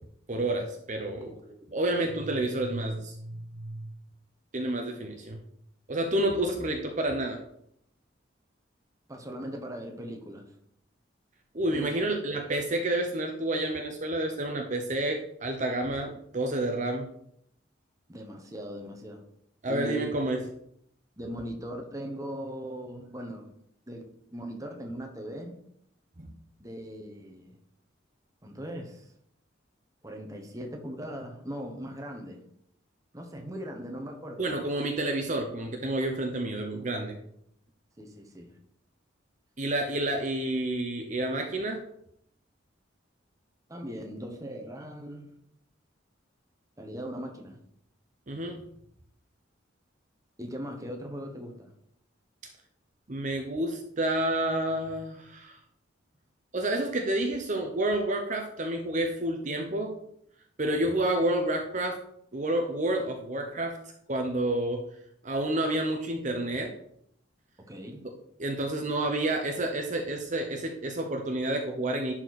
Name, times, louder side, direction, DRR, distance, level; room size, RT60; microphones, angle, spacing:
voice 1, 0.3-1.3 1.7-3.8 4.5-5.4 5.9-7.4 11.5-17.1 19.6-20.4 26.2-26.3 34.4-37.2 39.6-41.8 48.3-48.6 53.1-55.6 56.5-59.9 60.6-62.0 62.3-63.8 64.1-64.8 65.2-66.7 68.4-72.1, right 1 dB, 40° right, 3 dB, 0.8 m, -29 dB
voice 2, 1.2-1.8 9.1-10.5 11.7-12.0 18.1-19.2 19.7-20.1 21.2-23.5 23.9-25.6 26.6-27.6 28.4-29.1 30.0-32.4 33.1-34.5 38.0-38.6 43.7-45.3 46.8-47.6 50.4-51.7 67.6-68.0, equal, 15° right, 3 dB, 1.1 m, -39 dB
11.0 x 4.5 x 4.1 m, 0.71 s
head